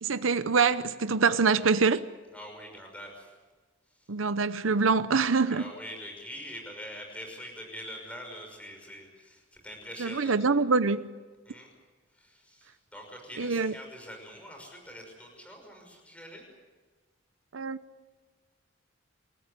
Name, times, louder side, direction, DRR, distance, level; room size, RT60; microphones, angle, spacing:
voice 1, 0.0-2.1 4.1-5.7 10.0-11.1 13.4-13.7 17.5-17.8, right 4 dB, 90° right, 0.8 m, -25 dB
voice 2, 2.3-3.3 3.9-4.1 5.5-10.4 11.4-11.7 12.1-16.5, equal, 5° left, 5.9 m, -44 dB
28.0 x 14.5 x 9.7 m
head